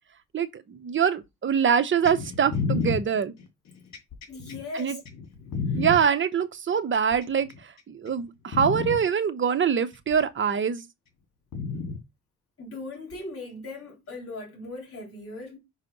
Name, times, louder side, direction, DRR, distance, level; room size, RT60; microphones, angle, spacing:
voice 1, 0.3-3.3 4.7-5.0 5.8-10.8, right 7 dB, 40° right, 1.0 m, -24 dB
sound 1, 2.0-6.0 6.9-7.6 8.1-8.2 8.5-9.0 10.1-10.2 11.5-12.0 13.1-13.2, left 4 dB, 65° left, 2.2 m, -30 dB
voice 2, 4.3-5.0 5.7-5.8 12.6-15.6, left 2 dB, 50° left, 3.8 m, -39 dB
5.7 x 3.3 x 5.4 m
cardioid pair, 90°, 30 cm